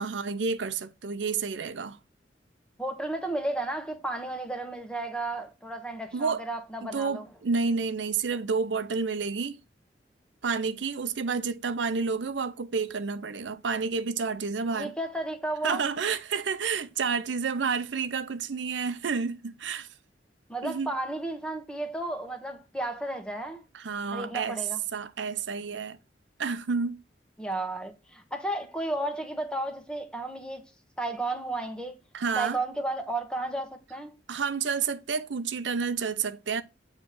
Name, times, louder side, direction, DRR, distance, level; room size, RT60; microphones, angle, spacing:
voice 1, 0.0-2.0 6.1-6.4 6.9-9.6 10.4-14.9 15.6-19.9 20.6-20.9 23.7-24.6 24.9-26.0 26.4-27.0 32.1-32.6 34.3-36.6, right 5 dB, 85° right, 0.6 m, -30 dB
voice 2, 2.8-7.2 14.7-15.8 20.5-23.6 24.1-24.8 27.4-30.6 31.0-32.0 32.4-34.2, right 2 dB, 5° left, 1.2 m, -33 dB
8.8 x 3.2 x 5.9 m
head